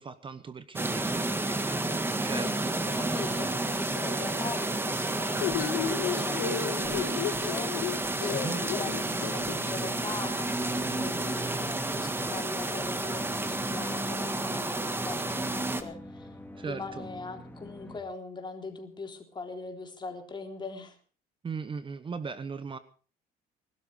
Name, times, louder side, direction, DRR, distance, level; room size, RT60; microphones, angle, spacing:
voice 1, 0.0-2.5 8.3-8.7 16.6-17.1 21.4-22.8, right 5 dB, 30° right, 13 dB, 1.1 m, -38 dB
sound 1, 0.7-15.8, right 2 dB, 15° right, 1.7 m, -31 dB
voice 2, 2.3-16.3 16.6-21.0, left 4 dB, 25° left, 4 dB, 3.7 m, -41 dB
sound 2, 5.4-9.5, left 10 dB, 80° left, 1.8 m, -33 dB
sound 3, 7.2-18.0, equal, 10° left, 2.6 m, -43 dB
20.5 x 12.5 x 5.0 m, 0.42 s
cardioid pair, 110°, 17 cm